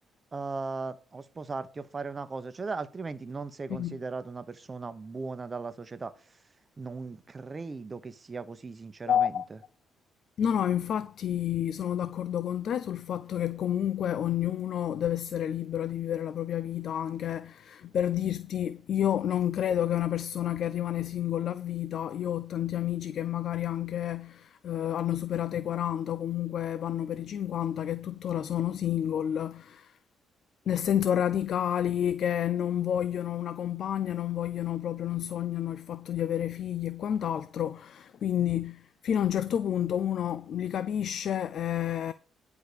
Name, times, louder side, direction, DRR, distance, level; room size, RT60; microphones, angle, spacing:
voice 1, 0.3-6.1 6.8-9.3, right 4 dB, 30° right, 0.9 m, -37 dB
voice 2, 3.7-4.0 9.1-9.4 10.4-30.0 30.7-42.1, left 10 dB, 65° left, 0.5 m, -30 dB
10.0 x 4.8 x 6.9 m
cardioid pair, 90°, 0 cm